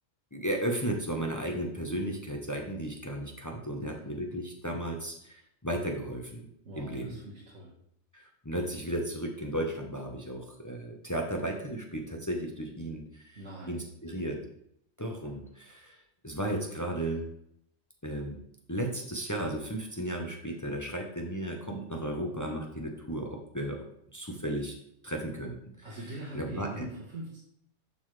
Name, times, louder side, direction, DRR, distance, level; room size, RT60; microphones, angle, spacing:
voice 1, 0.3-6.4 6.8-7.2 8.1-13.4 13.7-14.4 15.0-16.0 16.2-17.3 18.0-18.4 18.7-23.8 24.1-24.7 25.0-25.6 26.3-26.8, right 1 dB, 15° left, 1 dB, 0.8 m, -34 dB
voice 2, 3.8-4.2 6.6-7.7 13.4-13.8 25.8-27.4, right 1 dB, 70° right, -6 dB, 1.8 m, -42 dB
11.0 x 4.0 x 3.2 m, 0.72 s
omnidirectional pair, 1.3 m